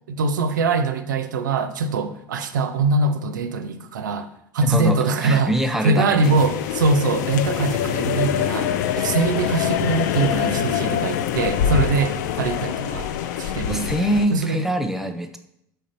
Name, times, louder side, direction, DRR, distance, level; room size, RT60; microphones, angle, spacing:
voice 1, 0.1-4.3 4.5-13.1 13.4-13.9 14.3-14.6, right 3 dB, 80° right, 8 dB, 0.4 m, -23 dB
voice 2, 4.6-4.9 5.2-6.3 13.7-15.4, right 1 dB, 5° right, 5 dB, 0.5 m, -23 dB
sound 1, 6.2-14.3, left 9 dB, 65° left, 0.4 m, -24 dB
3.8 x 3.4 x 4.2 m, 0.75 s
figure-of-eight pair, 70°, 10 cm